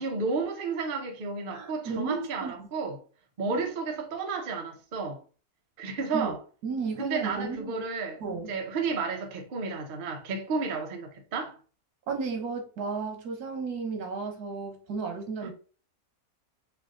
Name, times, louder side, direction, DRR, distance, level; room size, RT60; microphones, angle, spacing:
voice 1, 0.0-3.0 3.4-5.2 5.8-6.4 7.0-8.2 8.5-11.5 15.4-15.5, right 4 dB, 45° right, 0.7 m, -32 dB
voice 2, 1.5-2.7 3.5-3.7 6.1-6.3 6.6-7.8 8.2-8.5 12.1-15.5, right 4 dB, 85° right, 1.4 m, -33 dB
3.3 x 2.5 x 3.6 m
omnidirectional pair, 1.6 m